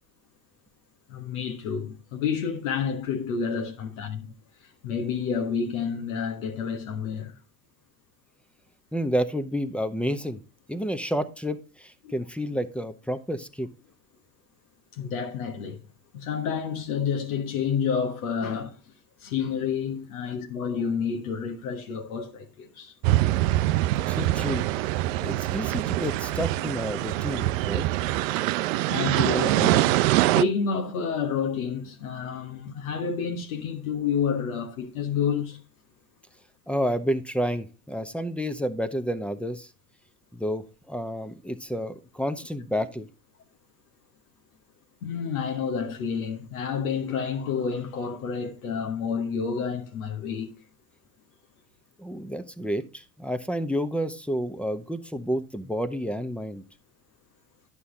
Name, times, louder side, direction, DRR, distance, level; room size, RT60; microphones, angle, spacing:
voice 1, 1.1-4.3 4.8-7.3 12.0-12.1 15.0-15.8 16.1-18.7 19.2-22.9 28.9-35.6 45.0-50.5, left 6 dB, 70° left, 1.5 m, -29 dB
voice 2, 8.9-10.4 10.7-13.7 23.9-24.7 25.2-27.9 36.7-39.7 40.3-43.1 52.0-56.6, equal, 5° left, 0.9 m, -30 dB
sound 1, 23.0-30.4, right 16 dB, 60° right, 0.6 m, -24 dB
11.0 x 6.1 x 3.8 m
figure-of-eight pair, 70°, 44 cm